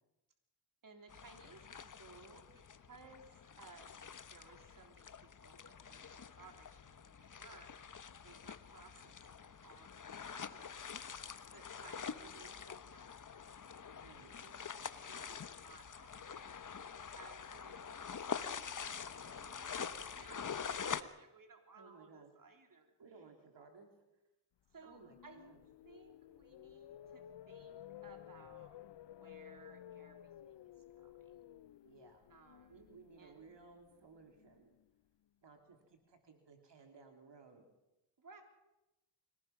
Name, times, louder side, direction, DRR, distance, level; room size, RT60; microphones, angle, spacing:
voice 1, 0.8-7.7 8.2-11.1 11.5-13.5 14.2-14.7 15.1-16.5 17.2-23.3 24.7-25.4 25.9-28.8 29.1-31.4 32.3-33.4 38.2-38.4, right 4 dB, 40° right, 4 dB, 3.5 m, -60 dB
sound 1, 1.1-21.0, left 6 dB, 40° left, 1.1 m, -46 dB
voice 2, 14.0-14.3 21.8-22.3 23.0-23.9 24.8-25.6 31.8-32.3 32.7-34.7 35.4-37.7, right 4 dB, 55° right, 4 dB, 3.4 m, -59 dB
sound 2, 24.7-34.9, left 11 dB, 55° left, 0.7 m, -55 dB
24.0 x 18.0 x 6.0 m, 0.98 s
cardioid pair, 70°, 50 cm